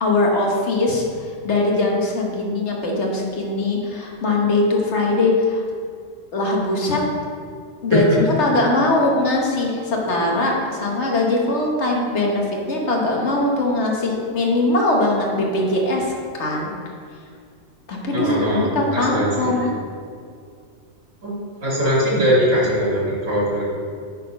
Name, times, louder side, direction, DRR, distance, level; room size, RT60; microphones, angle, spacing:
voice 1, 0.0-5.7 6.3-7.0 7.8-16.7 17.9-19.7, left 2 dB, 65° left, -1 dB, 1.4 m, -21 dB
voice 2, 18.1-19.5 21.2-21.3 21.6-23.6, equal, 80° right, -7 dB, 2.7 m, -20 dB
9.1 x 3.9 x 5.2 m, 2.2 s
omnidirectional pair, 1.3 m